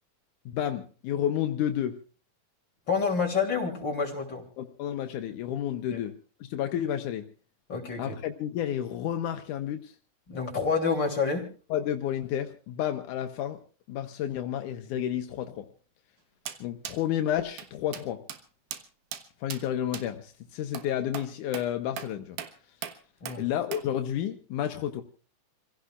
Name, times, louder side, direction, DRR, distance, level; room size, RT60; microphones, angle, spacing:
voice 1, 0.5-1.9 4.6-7.3 8.0-9.9 11.7-13.6 13.9-15.7 16.6-18.2 19.4-22.4 23.4-25.0, left 10 dB, 85° left, 6 dB, 2.5 m, -31 dB
voice 2, 2.9-4.4 5.9-6.0 7.7-8.2 10.3-11.5 23.2-23.4, left 5 dB, 35° left, 2 dB, 3.6 m, -28 dB
sound 1, 16.5-16.6 16.8-17.0 17.6-17.7 17.9-18.0 18.3-18.4 18.7-18.8 19.1-19.2 19.5-19.6 19.9-20.1 20.7-20.9 21.1-21.3 21.5-21.7 22.0-22.1 22.4-22.5 22.8-23.0 23.3-23.4 23.7-23.8, right 9 dB, 85° right, 2.8 m, -38 dB
28.5 x 16.5 x 2.4 m, 0.37 s
omnidirectional pair, 3.5 m